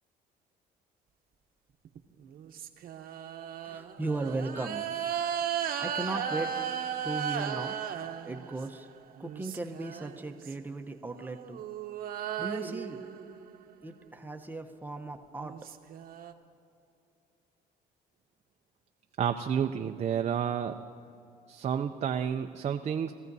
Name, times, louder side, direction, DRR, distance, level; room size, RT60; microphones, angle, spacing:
sound 1, 1.9-8.8 9.2-10.5 11.1-13.8 15.1-15.2 15.4-16.3, right 8 dB, 60° right, 0.9 m, -36 dB
voice 1, 3.6-4.8 5.8-6.5 7.0-7.8 8.3-8.9 9.2-11.6 12.4-13.0 13.8-15.5, right 3 dB, 10° right, 5 dB, 0.8 m, -36 dB
voice 2, 19.2-20.8 21.5-23.1, right 8 dB, 40° right, 6 dB, 0.5 m, -30 dB
22.0 x 14.5 x 2.7 m, 2.6 s
cardioid pair, 110°, 17 cm